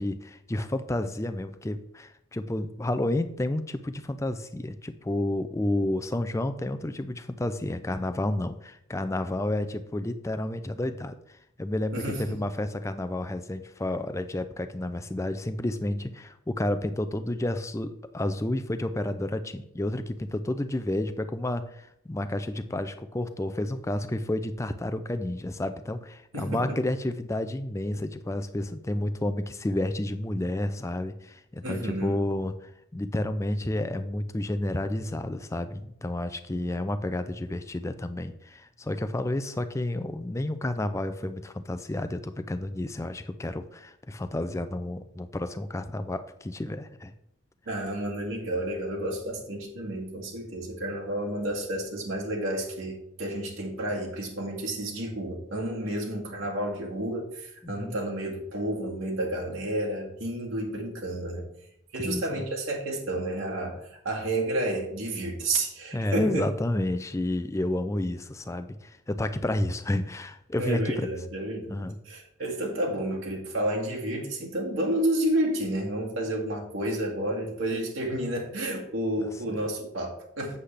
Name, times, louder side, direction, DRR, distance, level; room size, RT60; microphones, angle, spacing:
voice 1, 0.0-47.1 57.6-58.0 62.0-62.4 65.9-71.1 71.7-72.0 79.2-79.3, left 1 dB, 15° left, 10 dB, 0.4 m, -30 dB
voice 2, 11.9-12.4 26.3-26.8 31.6-32.2 47.7-61.5 61.9-66.5 70.6-80.6, right 1 dB, 70° right, -1 dB, 2.0 m, -31 dB
8.2 x 7.7 x 3.3 m, 0.75 s
head